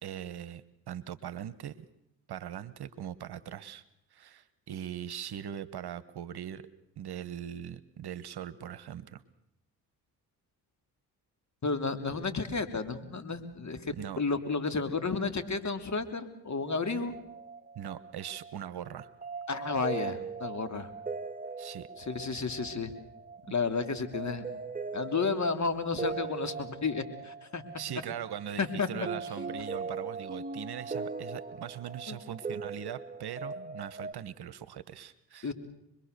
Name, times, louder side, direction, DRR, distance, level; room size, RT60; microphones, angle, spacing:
voice 1, 0.0-1.9 2.3-3.8 4.1-6.7 7.0-9.2 13.9-14.2 17.7-19.1 21.6-21.9 27.8-35.5, right 9 dB, 55° right, 15 dB, 1.3 m, -40 dB
voice 2, 11.6-17.2 19.5-20.9 22.1-22.9 23.5-24.4 24.9-27.6 28.6-28.9 32.1-32.2 35.4-35.5, left 4 dB, 35° left, 8 dB, 3.2 m, -32 dB
sound 1, 16.7-34.1, right 4 dB, 20° right, 2.1 m, -40 dB
25.5 x 22.0 x 6.8 m, 0.82 s
hypercardioid pair, 50°, 47 cm